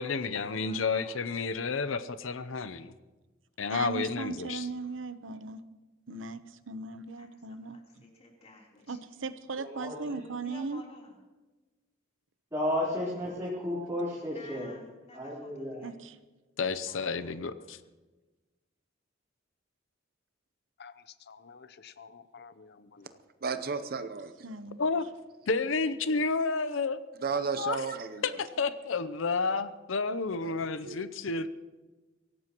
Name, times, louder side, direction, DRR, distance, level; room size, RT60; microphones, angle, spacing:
voice 1, 0.0-2.9 3.6-4.7 16.6-17.8 24.8-25.1 25.5-27.0 27.6-27.9 28.2-31.5, left 4 dB, 90° left, 0.7 m, -31 dB
voice 2, 0.6-1.9 7.2-9.0 10.4-11.2 14.3-16.0 16.9-17.4, left 2 dB, 35° left, 3.6 m, -54 dB
voice 3, 3.7-5.6 6.1-7.8 8.9-10.8 15.8-16.2 24.4-24.8, right 4 dB, 75° right, 0.9 m, -38 dB
voice 4, 9.6-10.2 12.5-14.7 15.1-15.8, left 1 dB, 15° right, 3.9 m, -33 dB
voice 5, 20.8-23.1, left 6 dB, 55° left, 0.7 m, -51 dB
voice 6, 23.4-24.3 27.2-28.2 30.4-30.5 30.8-31.0, right 5 dB, 50° right, 0.8 m, -33 dB
23.5 x 17.5 x 3.0 m
head